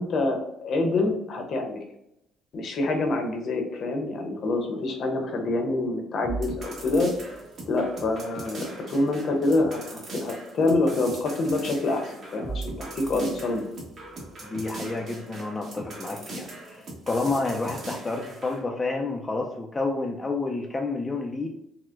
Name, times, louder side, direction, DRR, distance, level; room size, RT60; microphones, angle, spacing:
voice 1, 0.0-1.8 2.5-7.1 7.7-13.6, left 2 dB, 50° left, 3 dB, 0.7 m, -26 dB
sound 1, 6.2-18.6, right 2 dB, 45° right, 1.1 m, -39 dB
voice 2, 14.4-21.5, left 3 dB, 20° left, 1 dB, 0.3 m, -30 dB
4.3 x 2.0 x 2.4 m, 0.80 s
cardioid pair, 130°, 0 cm